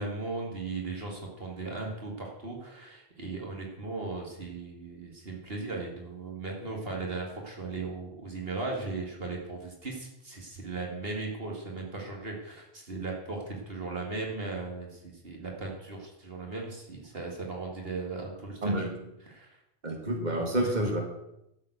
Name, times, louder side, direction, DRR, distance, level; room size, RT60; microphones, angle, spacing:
voice 1, 0.0-18.9 19.2-19.6 20.6-20.7, right 3 dB, 65° right, 0 dB, 2.4 m, -37 dB
voice 2, 19.8-21.0, right 1 dB, 45° right, 2 dB, 2.4 m, -28 dB
12.5 x 7.4 x 7.9 m, 0.84 s
omnidirectional pair, 1.1 m